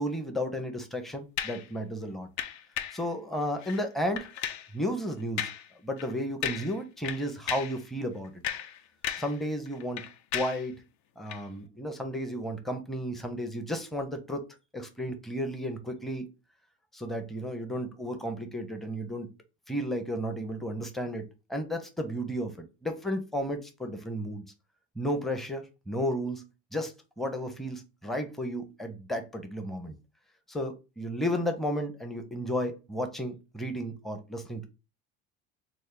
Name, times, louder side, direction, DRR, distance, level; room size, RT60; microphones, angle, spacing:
voice 1, 0.0-2.3 2.9-4.3 4.7-5.5 5.8-8.3 9.2-10.0 10.3-10.7 11.2-14.4 14.7-16.3 16.9-19.3 19.7-21.2 21.5-24.4 25.0-26.5 26.7-29.9 30.5-34.7, equal, ahead, 0.6 m, -33 dB
sound 1, 1.4-1.7 2.4-3.0 3.6-3.8 4.2-4.7 5.4-5.7 6.0-6.1 6.4-6.8 7.0-7.8 8.2-9.4 9.7-10.7 11.3-11.4, left 10 dB, 55° left, 0.5 m, -35 dB
3.1 x 2.1 x 3.7 m
supercardioid pair, 80°, 35 cm